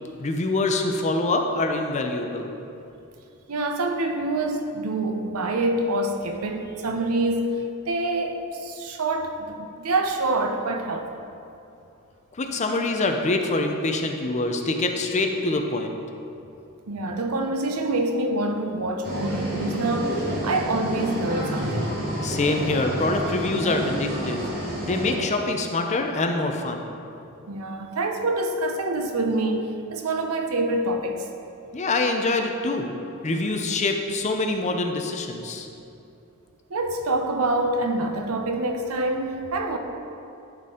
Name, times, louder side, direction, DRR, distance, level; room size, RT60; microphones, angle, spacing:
voice 1, 0.2-2.5 12.4-16.0 22.2-26.8 31.7-33.0 33.2-35.7, left 2 dB, 30° left, 4 dB, 0.6 m, -25 dB
voice 2, 3.5-11.2 16.9-22.0 27.5-31.3 36.7-39.8, right 2 dB, 75° right, 4 dB, 0.7 m, -26 dB
sound 1, 19.0-25.2, equal, 45° right, 1.3 m, -29 dB
12.0 x 4.2 x 3.7 m, 2.7 s
head